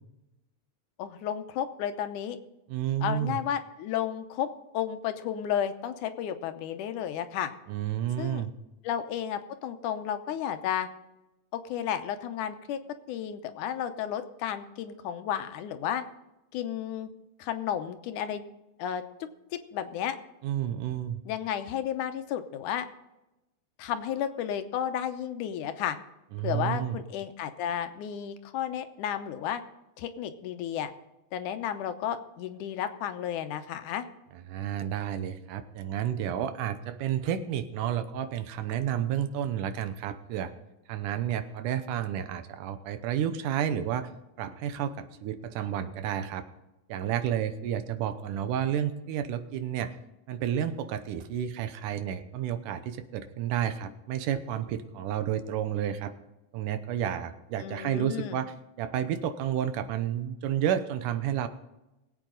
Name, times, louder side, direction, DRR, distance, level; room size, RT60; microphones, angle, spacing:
voice 1, 1.0-2.4 3.0-7.5 8.2-8.4 8.8-10.9 11.5-12.8 13.1-16.0 16.5-17.1 17.4-18.4 18.8-19.0 19.5-20.2 21.3-22.9 23.8-26.0 26.4-29.6 30.0-30.9 31.3-34.1 57.6-58.4, left 9 dB, 85° left, 9 dB, 2.3 m, -32 dB
voice 2, 2.7-3.4 7.7-8.5 20.4-21.2 26.3-27.0 34.5-40.5 40.9-44.1 44.4-46.5 46.9-49.9 50.3-56.1 56.5-61.5, right 10 dB, 85° right, 11 dB, 2.5 m, -31 dB
21.0 x 8.5 x 3.9 m, 0.96 s
omnidirectional pair, 3.6 m